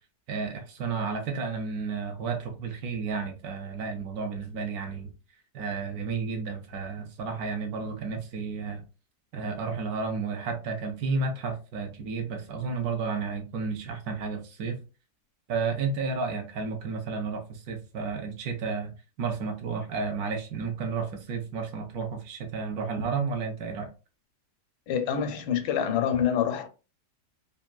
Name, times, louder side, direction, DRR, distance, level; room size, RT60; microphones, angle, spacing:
voice 1, 0.3-5.1 5.5-8.8 9.3-14.8 15.5-18.9 19.2-23.9, right 4 dB, 70° right, 1.0 m, -32 dB
voice 2, 24.9-26.7, left 8 dB, 85° left, 1.2 m, -26 dB
3.5 x 2.3 x 2.2 m
omnidirectional pair, 1.8 m